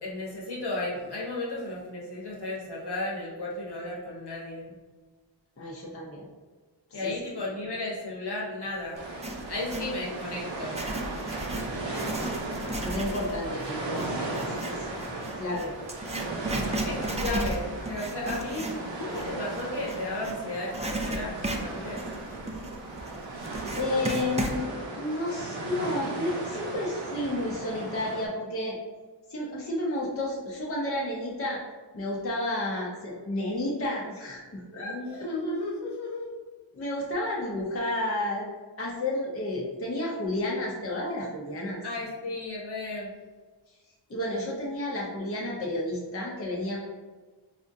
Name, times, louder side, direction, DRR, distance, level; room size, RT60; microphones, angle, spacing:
voice 1, 0.0-4.8 6.9-9.0 9.5-10.8 16.9-21.3 21.6-22.0 34.8-36.3 41.8-43.1, left 2 dB, 60° left, -3 dB, 1.0 m, -34 dB
voice 2, 5.6-6.3 6.9-7.2 12.8-14.9 15.2-15.7 23.8-28.8 29.3-31.6 31.9-35.3 36.7-38.5 38.8-41.8 44.1-46.8, left 1 dB, 30° left, -3 dB, 0.6 m, -31 dB
sound 1, 8.9-28.3, right 2 dB, 75° right, 0.8 m, -36 dB
Writing, 9.0-9.9 10.5-20.4 20.7-24.6, right 1 dB, 15° right, 0.3 m, -34 dB
4.2 x 2.5 x 2.6 m, 1.4 s
wide cardioid pair, 80°, 45 cm